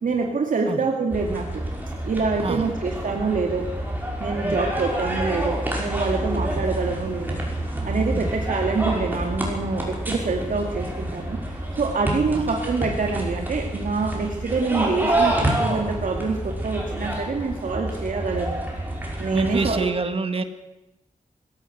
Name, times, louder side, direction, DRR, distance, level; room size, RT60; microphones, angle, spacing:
voice 1, 0.0-1.6 2.0-3.7 4.2-7.4 7.8-11.4 11.8-18.6 19.2-19.9, right 4 dB, 80° right, 1 dB, 2.4 m, -26 dB
sound 1, 1.1-19.8, right 1 dB, 15° right, 5.8 m, -28 dB
voice 2, 19.3-20.4, right 4 dB, 45° right, 8 dB, 1.8 m, -27 dB
22.0 x 16.0 x 7.9 m, 0.98 s
wide cardioid pair, 130°, 14 cm